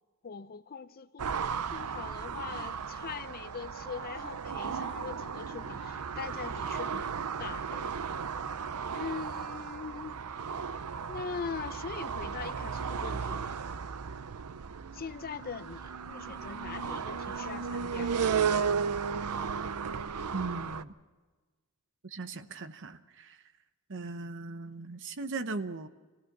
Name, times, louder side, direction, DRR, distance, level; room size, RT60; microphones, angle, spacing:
voice 1, 0.2-1.3 1.7-8.0 8.9-10.2 11.1-13.6 14.9-18.2, left 5 dB, 45° left, 0.6 m, -41 dB
sound 1, 1.2-20.8, right 6 dB, 85° right, 0.6 m, -35 dB
voice 2, 20.3-20.9 22.0-23.4 23.9-25.9, right 3 dB, 55° right, 0.9 m, -38 dB
27.0 x 17.0 x 6.0 m
head